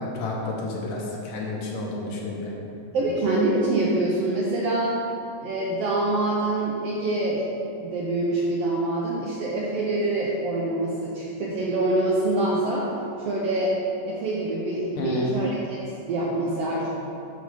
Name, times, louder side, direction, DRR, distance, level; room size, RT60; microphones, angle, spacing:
voice 1, 0.0-2.5 15.0-15.3, left 2 dB, 75° left, -2 dB, 2.4 m, -30 dB
voice 2, 2.9-5.0 5.4-7.4 7.8-12.9 13.3-13.8 14.0-15.8 16.1-16.9, right 2 dB, 85° right, -5 dB, 1.3 m, -25 dB
6.8 x 4.1 x 6.2 m, 2.7 s
omnidirectional pair, 3.8 m